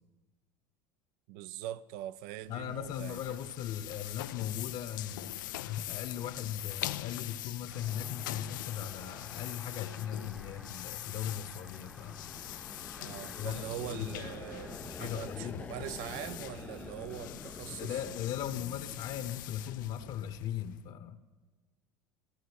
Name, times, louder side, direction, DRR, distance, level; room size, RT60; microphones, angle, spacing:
voice 1, 1.3-3.4 13.0-18.0, right 13 dB, 70° right, 0.6 m, -42 dB
sound 1, 2.4-20.9, left 15 dB, 90° left, 0.4 m, -43 dB
voice 2, 2.5-5.3 5.6-12.4 13.1-14.4 14.9-15.7 17.7-21.2, left 10 dB, 60° left, 1.1 m, -38 dB
Car passing by / Accelerating revving vroom, 7.7-15.1, equal, ahead, 0.8 m, -54 dB
sound 2, 11.0-20.7, left 4 dB, 15° left, 0.4 m, -48 dB
15.0 x 12.0 x 6.5 m
supercardioid pair, 105°, 10 cm